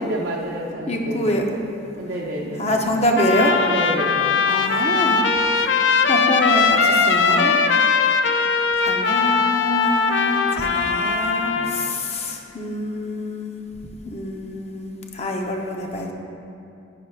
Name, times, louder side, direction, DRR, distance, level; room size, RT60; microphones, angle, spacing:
voice 1, 0.0-1.3 1.9-2.8 3.7-4.4 11.4-11.7, right 1 dB, 75° right, -3 dB, 0.7 m, -30 dB
voice 2, 0.9-1.5 2.6-3.7 4.4-5.2 5.6-5.7 6.1-7.6 8.8-13.6 14.0-16.1, left 1 dB, 35° left, 2 dB, 0.7 m, -25 dB
Trumpet, 3.2-11.9, left 5 dB, 65° left, 0.4 m, -20 dB
10.0 x 9.1 x 2.4 m, 2.6 s
head